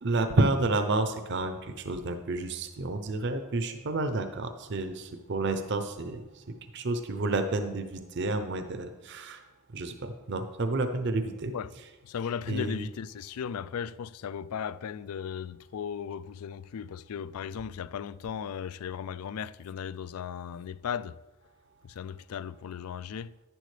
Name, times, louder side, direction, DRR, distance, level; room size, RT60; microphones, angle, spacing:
voice 1, 0.0-6.4 6.7-9.4 9.7-11.5 12.5-12.8, right 2 dB, 50° right, 0.6 m, -30 dB
voice 2, 12.0-21.2 21.8-23.3, left 7 dB, 80° left, 0.4 m, -36 dB
10.5 x 10.0 x 3.3 m
head